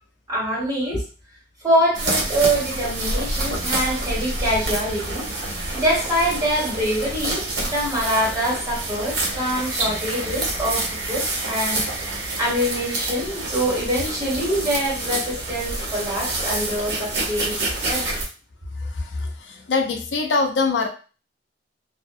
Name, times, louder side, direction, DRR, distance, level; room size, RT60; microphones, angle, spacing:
voice 1, 0.3-1.0 1.6-11.8 12.4-18.2, equal, 20° right, -6 dB, 1.5 m, -24 dB
sound 1, 1.9-18.3, right 2 dB, 70° right, 0.9 m, -27 dB
voice 2, 18.8-20.9, left 4 dB, 90° left, 5 dB, 0.5 m, -23 dB
2.4 x 2.1 x 2.6 m, 0.35 s
head